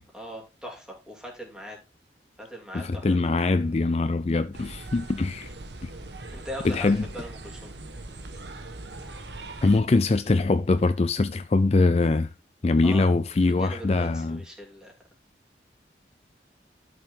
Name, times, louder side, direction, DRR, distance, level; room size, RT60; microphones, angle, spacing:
voice 1, 0.1-1.8 2.4-3.5 6.3-7.7 12.8-13.2 13.5-14.9, equal, 5° right, 3.0 m, -40 dB
voice 2, 2.7-5.5 5.8-5.9 6.6-7.0 9.6-12.3 12.6-14.4, left 3 dB, 35° left, 0.4 m, -23 dB
sound 1, 4.5-9.8, right 2 dB, 80° right, 1.4 m, -40 dB
12.0 x 6.7 x 3.8 m
head